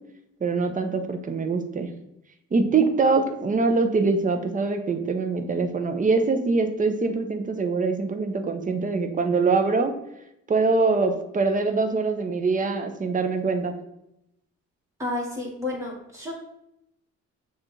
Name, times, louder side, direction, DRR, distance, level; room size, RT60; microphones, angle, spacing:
voice 1, 0.4-1.9 2.5-9.9 10.5-13.8, right 4 dB, 25° right, 6 dB, 0.6 m, -23 dB
voice 2, 15.0-16.3, left 2 dB, 10° right, -3 dB, 1.5 m, -31 dB
6.5 x 2.5 x 3.1 m, 0.83 s
cardioid pair, 90°, 30 cm